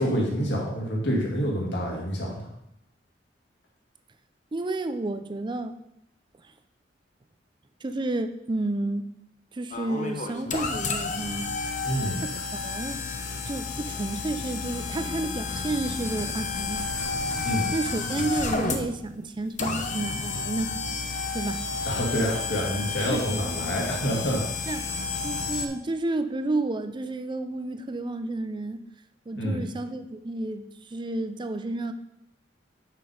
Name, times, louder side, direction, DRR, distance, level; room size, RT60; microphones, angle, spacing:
voice 1, 0.0-2.5 11.8-12.2 17.4-17.7 21.9-24.7 29.3-29.6, equal, 70° left, -2 dB, 2.2 m, -27 dB
voice 2, 4.5-5.8 6.4-6.5 7.8-9.1 9.5-11.5 12.2-13.0 13.5-16.9 17.3-20.8 21.3-21.6 23.1-23.3 24.7-24.8 25.2-28.8 29.3-31.9, right 2 dB, 25° right, 9 dB, 0.5 m, -31 dB
sound 1, 9.7-25.7, left 4 dB, 45° left, 0.7 m, -31 dB
6.0 x 5.7 x 4.9 m, 0.82 s
head